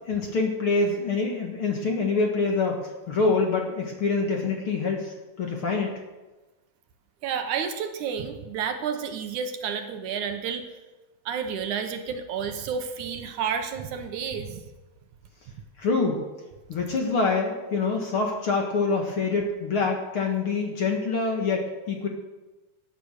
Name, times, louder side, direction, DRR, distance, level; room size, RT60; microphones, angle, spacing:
voice 1, 0.1-2.8 3.1-6.0 15.8-16.2 16.7-22.1, left 4 dB, 50° left, 1 dB, 2.0 m, -25 dB
voice 2, 7.2-10.6 11.3-14.6, right 7 dB, 70° right, 6 dB, 2.3 m, -30 dB
16.0 x 10.5 x 6.5 m, 1.2 s
omnidirectional pair, 3.9 m